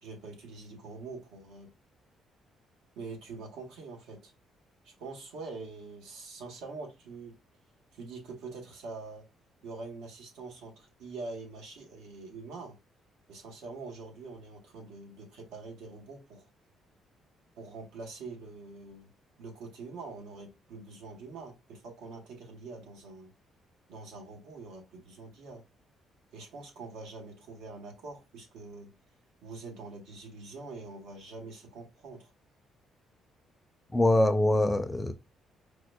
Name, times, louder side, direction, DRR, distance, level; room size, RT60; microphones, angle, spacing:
voice 1, 0.0-1.7 3.0-4.3 4.8-7.4 7.9-9.3 9.6-12.8 13.3-16.5 17.6-19.1 19.4-23.3 23.9-25.6 26.3-28.9 29.4-32.3, right 3 dB, 90° right, 0.9 m, -44 dB
voice 2, 33.9-35.1, left 1 dB, 15° left, 0.4 m, -24 dB
4.6 x 2.1 x 2.2 m
cardioid pair, 100°, 0 cm